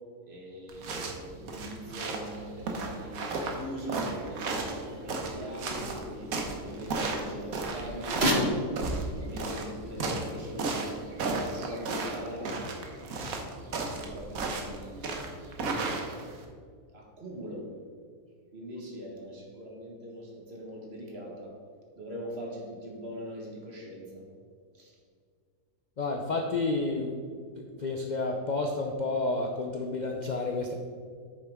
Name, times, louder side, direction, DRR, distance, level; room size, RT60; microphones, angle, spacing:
voice 1, 0.3-6.3 6.6-8.6 9.1-12.6 13.8-15.7 16.9-17.7 18.5-21.5 22.0-24.2 24.7-25.0, equal, 45° right, -1 dB, 1.7 m, -38 dB
sound 1, 0.7-16.4, right 3 dB, 65° right, 1.4 m, -34 dB
sound 2, 3.0-14.2, left 1 dB, 35° left, 1.7 m, -48 dB
voice 2, 26.0-27.2 27.8-30.7, left 3 dB, 70° left, 2 dB, 0.4 m, -30 dB
9.2 x 6.7 x 3.6 m, 2.1 s
omnidirectional pair, 1.6 m